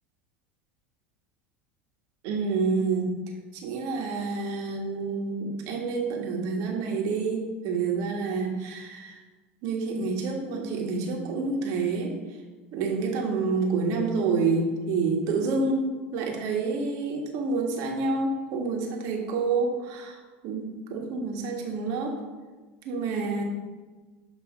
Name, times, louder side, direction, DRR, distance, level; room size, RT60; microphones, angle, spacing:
voice 1, 2.2-3.2 3.5-9.2 9.6-12.1 12.7-22.2 22.8-23.4, right 4 dB, 60° right, 1 dB, 1.5 m, -28 dB
8.5 x 3.2 x 5.4 m, 1.3 s
hypercardioid pair, 85°, 7 cm